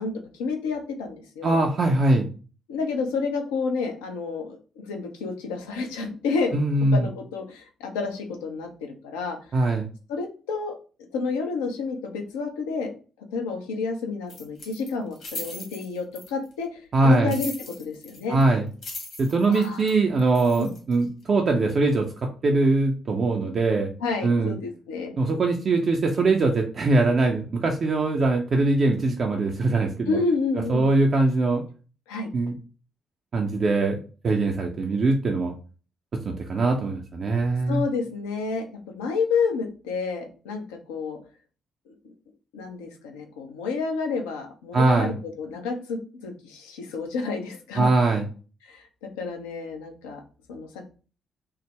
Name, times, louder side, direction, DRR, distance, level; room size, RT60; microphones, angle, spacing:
voice 1, 0.0-1.6 2.7-6.6 6.9-9.4 10.1-10.7 11.1-12.9 13.3-18.4 19.5-19.8 20.6-20.7 24.0-25.1 30.1-30.9 32.1-32.3 37.7-41.2 41.9-42.0 42.5-47.9 48.6-50.2 50.5-50.9, left 4 dB, 70° left, 4 dB, 0.5 m, -30 dB
voice 2, 1.4-2.3 6.5-7.1 9.5-9.9 16.9-17.3 18.3-18.7 19.2-22.1 22.4-23.9 24.2-24.5 25.2-30.2 30.7-31.6 32.3-32.5 33.3-35.5 36.2-37.8 44.7-45.1 47.8-48.3, right 2 dB, 45° right, 2 dB, 0.5 m, -22 dB
sound 1, 14.3-16.5 17.3-18.4 18.7-21.0, left 2 dB, 55° left, 1.3 m, -39 dB
3.4 x 2.0 x 3.2 m, 0.37 s
figure-of-eight pair, 40°, 0 cm